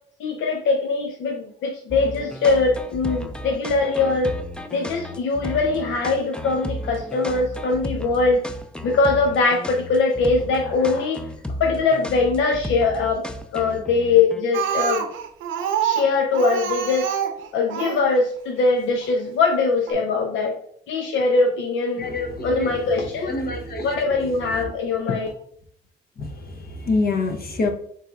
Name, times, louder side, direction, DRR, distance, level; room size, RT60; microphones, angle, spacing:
voice 1, 0.2-4.3 4.7-8.4 8.8-11.3 11.6-13.2 13.5-15.0 15.8-17.1 17.5-20.6 20.9-22.1 22.4-23.4 23.8-25.3, left 4 dB, 75° left, 1 dB, 0.7 m, -21 dB
sound 1, 1.9-14.4, left 1 dB, 5° left, 0.5 m, -34 dB
Speech, 14.5-18.1 19.0-19.1 19.5-19.6 19.9-20.0, right 8 dB, 90° right, 0.7 m, -26 dB
voice 2, 22.0-22.8 23.3-23.9 26.2-27.7, left 3 dB, 50° left, 4 dB, 1.1 m, -26 dB
6.7 x 3.2 x 2.4 m, 0.66 s
cardioid pair, 90°, 20 cm